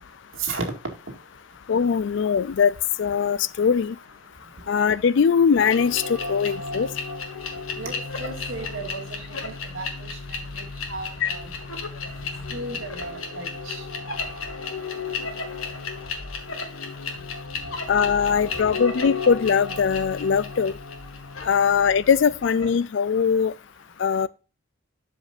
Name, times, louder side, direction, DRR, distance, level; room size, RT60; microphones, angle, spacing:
voice 1, 1.7-4.0 4.7-6.9 11.2-11.3 17.9-20.8 21.4-23.5 24.0-24.3, left 6 dB, 60° left, 0.3 m, -21 dB
sound 1, 5.6-22.8, left 4 dB, 90° left, 1.8 m, -33 dB
voice 2, 7.8-11.5 12.5-13.8, right 3 dB, 70° right, 2.1 m, -35 dB
12.0 x 5.2 x 2.6 m
head